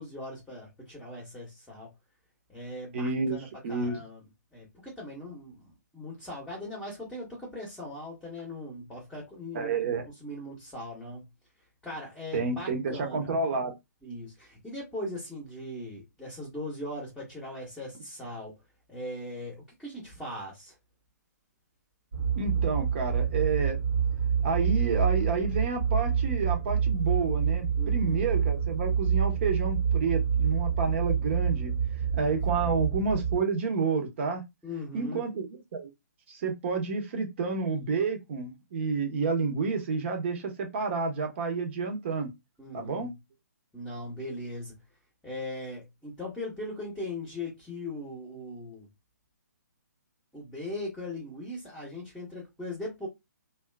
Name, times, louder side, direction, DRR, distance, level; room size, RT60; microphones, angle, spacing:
voice 1, 0.0-1.9 2.5-4.2 4.5-9.7 10.2-11.3 11.8-13.3 14.0-18.6 18.9-20.7 27.8-28.2 32.5-32.8 34.6-35.2 42.6-43.1 43.7-44.7 45.2-48.9 50.3-53.1, left 1 dB, 5° left, 1.0 m, -39 dB
voice 2, 2.9-3.4 3.6-4.0 9.5-10.0 12.3-13.7 22.3-23.8 24.4-31.7 32.1-34.4 34.9-35.9 36.3-42.3 42.7-43.1, right 4 dB, 40° right, 0.9 m, -30 dB
sound 1, 22.1-33.4, right 7 dB, 65° right, 0.7 m, -27 dB
2.9 x 2.4 x 2.2 m
figure-of-eight pair, 135°, 9 cm